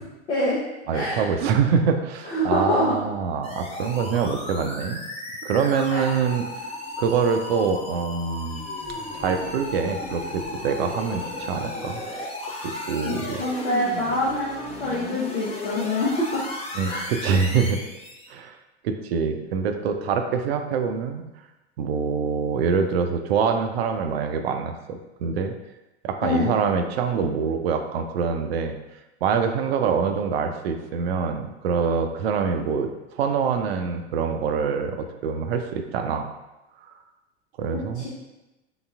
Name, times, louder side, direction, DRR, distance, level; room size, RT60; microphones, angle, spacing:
voice 1, 0.3-0.6 0.9-1.3 2.3-3.0 5.9-6.0 13.0-16.4 16.8-17.1 26.2-26.5 37.9-38.1, left 1 dB, 75° left, -6 dB, 0.8 m, -25 dB
voice 2, 0.9-5.0 5.4-6.7 7.0-8.6 9.1-12.0 12.5-13.4 16.7-17.8 18.3-18.6 18.8-21.2 21.8-25.5 26.0-28.8 29.2-32.9 33.2-36.3 37.6-38.1, right 6 dB, 60° right, 6 dB, 0.5 m, -25 dB
sound 1, 3.4-18.3, left 2 dB, 20° left, 0.6 m, -35 dB
3.9 x 3.5 x 2.3 m, 1.0 s
figure-of-eight pair, 80°, 34 cm